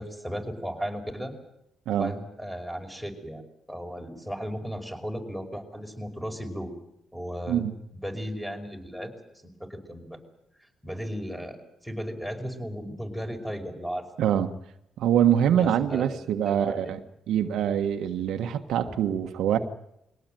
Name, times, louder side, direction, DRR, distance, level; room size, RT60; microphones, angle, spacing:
voice 1, 0.0-1.3 2.0-3.4 3.7-6.7 7.1-7.6 7.9-9.1 9.4-10.2 10.8-14.1 15.5-17.0 18.8-18.9, equal, 5° left, 5.3 m, -35 dB
voice 2, 14.2-14.5 15.0-17.0 17.3-19.6, right 9 dB, 80° right, 1.5 m, -24 dB
22.5 x 18.0 x 9.2 m
cardioid pair, 90°, 0 cm